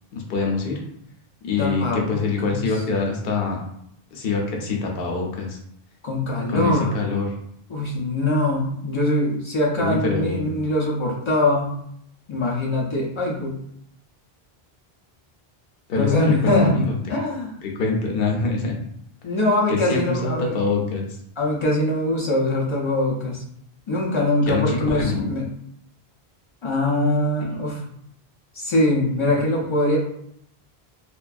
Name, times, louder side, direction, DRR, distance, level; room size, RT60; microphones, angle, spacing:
voice 1, 0.1-0.8 1.4-3.6 4.1-5.6 6.5-7.3 9.8-10.5 15.9-16.9 17.6-18.7 19.7-21.1 24.4-25.3, left 4 dB, 70° left, 1 dB, 0.8 m, -24 dB
voice 2, 1.6-2.6 6.0-7.0 7.7-11.7 12.3-13.6 16.0-16.8 17.1-17.5 19.2-20.6 21.4-23.4 23.9-25.5 26.6-27.8 28.5-30.0, left 1 dB, 50° left, -4 dB, 0.3 m, -22 dB
2.5 x 2.2 x 2.3 m, 0.71 s
omnidirectional pair, 1.0 m